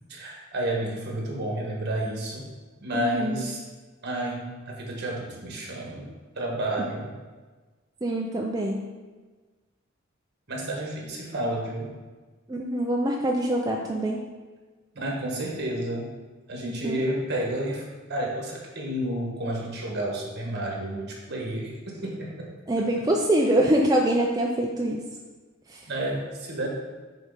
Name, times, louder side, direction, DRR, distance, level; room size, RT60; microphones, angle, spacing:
voice 1, 0.1-2.5 2.8-3.6 4.0-6.1 6.3-7.1 10.5-12.0 14.9-16.1 16.5-22.5 25.9-26.7, right 1 dB, 55° right, -1 dB, 1.6 m, -31 dB
voice 2, 2.9-3.5 8.0-8.8 12.5-14.2 16.6-17.0 22.7-25.0 25.7-25.9, right 1 dB, 20° right, -1 dB, 0.5 m, -25 dB
6.6 x 4.2 x 5.2 m, 1.3 s
head